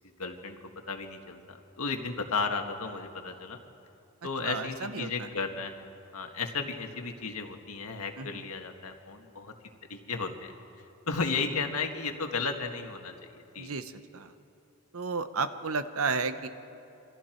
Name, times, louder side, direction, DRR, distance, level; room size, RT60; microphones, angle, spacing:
voice 1, 0.2-0.6 0.9-3.6 4.2-9.5 9.9-10.5 11.1-13.7, left 4 dB, 90° left, 4 dB, 1.7 m, -34 dB
voice 2, 4.4-5.1 8.2-8.3 13.6-14.3 14.9-16.5, right 4 dB, 80° right, 10 dB, 1.0 m, -32 dB
27.5 x 24.0 x 4.5 m, 2.8 s
head